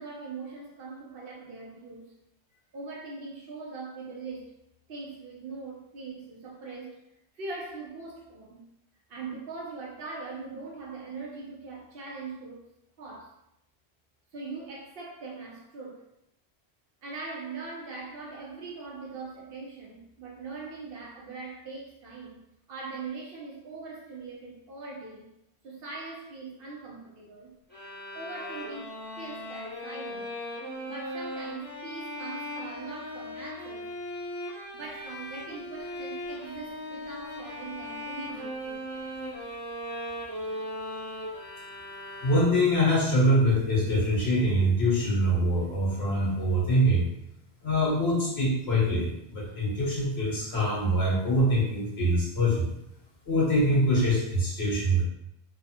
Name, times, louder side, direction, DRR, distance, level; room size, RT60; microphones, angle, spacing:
voice 1, 0.0-2.1 2.7-4.5 4.9-7.0 7.3-8.6 9.1-12.6 13.0-13.3 14.3-16.1 17.0-22.4 22.7-25.3 25.6-27.5 28.1-30.3 30.8-33.9 34.7-38.9 40.5-40.6, right 4 dB, 65° right, -2 dB, 0.8 m, -41 dB
sound 1, 27.7-42.8, left 1 dB, 10° left, 0.7 m, -38 dB
voice 2, 42.2-47.1 47.6-52.7 53.3-55.0, equal, 75° left, -6 dB, 1.3 m, -24 dB
3.0 x 2.0 x 2.8 m, 0.81 s
omnidirectional pair, 1.1 m